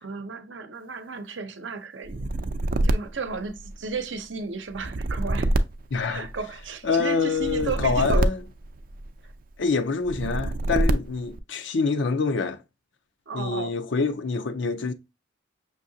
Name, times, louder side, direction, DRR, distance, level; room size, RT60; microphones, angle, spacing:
voice 1, 0.0-2.3 2.8-5.5 6.1-8.3 13.3-13.8, right 4 dB, 85° right, 0.7 m, -34 dB
sound 1, 2.0-4.0 4.7-6.7 7.4-9.3 10.0-11.4, right 1 dB, 50° right, 0.4 m, -26 dB
voice 2, 5.9-6.3 6.8-8.4 9.6-12.6 13.3-14.9, left 4 dB, 85° left, 0.6 m, -26 dB
6.1 x 2.8 x 2.7 m
head